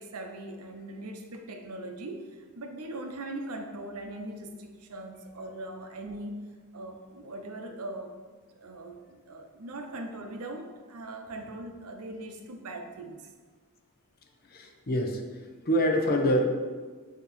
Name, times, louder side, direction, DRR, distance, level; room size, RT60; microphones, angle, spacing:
voice 1, 0.0-8.1 8.5-13.3, right 1 dB, 80° right, 5 dB, 0.7 m, -40 dB
voice 2, 14.5-15.2 15.6-16.6, equal, 45° left, 4 dB, 0.7 m, -25 dB
8.2 x 2.9 x 4.2 m, 1.5 s
head